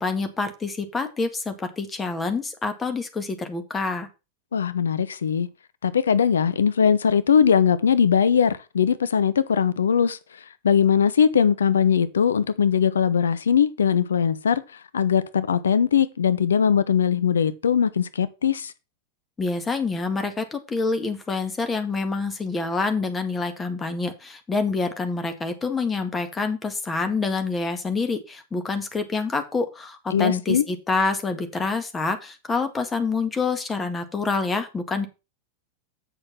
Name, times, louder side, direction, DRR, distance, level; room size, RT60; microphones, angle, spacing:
voice 1, 0.0-4.1 19.4-35.1, left 4 dB, 15° left, 1.8 m, -27 dB
voice 2, 4.5-5.5 5.8-10.2 10.6-14.6 14.9-18.7 30.1-30.6, left 7 dB, 70° left, 0.7 m, -20 dB
7.9 x 6.5 x 5.7 m
figure-of-eight pair, 90°, 0 cm